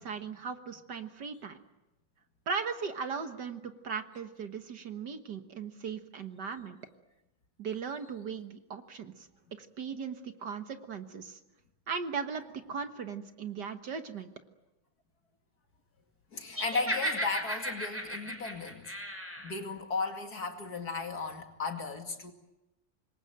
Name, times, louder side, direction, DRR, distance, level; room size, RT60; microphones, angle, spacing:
voice 1, 0.0-1.6 2.5-6.8 7.6-9.3 9.6-11.4 11.9-12.4 12.7-14.3, right 6 dB, 55° right, 8 dB, 1.9 m, -38 dB
voice 2, 16.3-18.9 19.4-22.3, left 4 dB, 50° left, 5 dB, 2.7 m, -35 dB
Laughter, 16.5-19.5, equal, 5° right, 5.8 m, -35 dB
26.5 x 22.0 x 9.0 m, 0.96 s
omnidirectional pair, 2.2 m